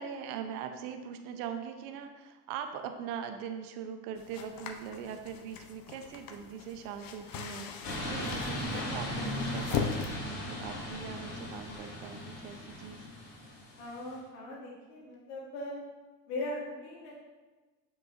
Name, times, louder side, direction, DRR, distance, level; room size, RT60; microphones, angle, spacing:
voice 1, 0.0-10.0 10.3-13.1, right 7 dB, 70° right, 7 dB, 0.8 m, -41 dB
sound 1, 4.2-10.1, left 6 dB, 45° left, 0.8 m, -39 dB
sound 2, 7.8-14.1, left 1 dB, 85° left, 2.1 m, -38 dB
voice 2, 13.8-15.8 16.3-17.1, left 1 dB, 70° left, -4 dB, 1.7 m, -39 dB
7.2 x 6.1 x 2.6 m, 1.3 s
hypercardioid pair, 70°, 48 cm